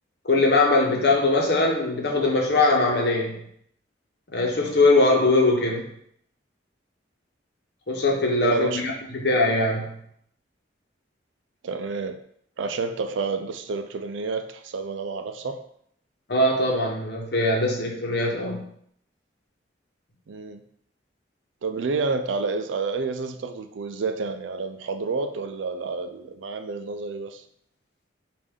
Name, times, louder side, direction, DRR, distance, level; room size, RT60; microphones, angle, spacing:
voice 1, 0.2-3.4 4.3-5.9 7.9-9.9 16.3-18.7, left 2 dB, 60° left, 0 dB, 0.9 m, -21 dB
voice 2, 8.4-8.8 11.6-12.2 12.6-15.6 20.3-20.6 21.6-27.4, right 4 dB, 80° right, 8 dB, 0.4 m, -29 dB
5.0 x 2.5 x 3.6 m, 0.67 s
head